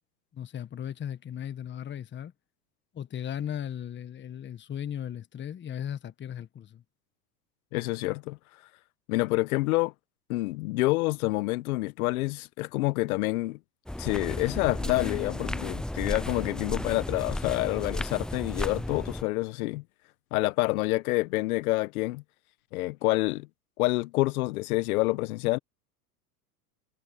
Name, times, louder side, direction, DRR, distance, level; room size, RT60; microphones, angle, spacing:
voice 1, 0.3-2.3 2.9-6.8, left 9 dB, 25° left, 1.3 m, -36 dB
voice 2, 7.7-8.4 9.1-9.9 10.3-13.6 14.0-19.8 20.3-22.2 22.7-23.5 23.8-25.6, left 20 dB, 65° left, 1.2 m, -27 dB
sound 1, 13.9-19.2, left 1 dB, ahead, 0.6 m, -34 dB
hypercardioid pair, 105°, 47 cm